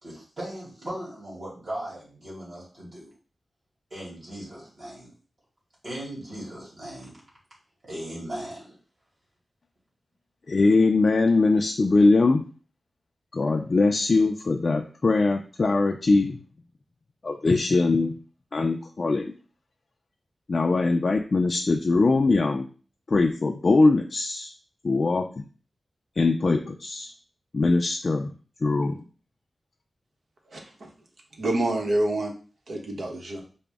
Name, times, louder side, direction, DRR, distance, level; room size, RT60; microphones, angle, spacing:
voice 1, 0.0-3.1 3.9-5.1 5.8-7.1 7.8-8.8, right 1 dB, 50° right, -6 dB, 2.1 m, -38 dB
voice 2, 10.5-12.4 13.3-16.4 17.2-18.1 18.5-19.3 20.5-22.7 23.1-24.5 24.8-25.4 26.2-27.1 27.5-28.3 28.6-29.0, left 3 dB, 50° left, 2 dB, 0.3 m, -22 dB
voice 3, 30.5-30.9 31.4-32.3 32.7-33.4, right 1 dB, 70° right, 2 dB, 0.9 m, -27 dB
4.9 x 2.0 x 3.4 m, 0.38 s
wide cardioid pair, 95°, 0 cm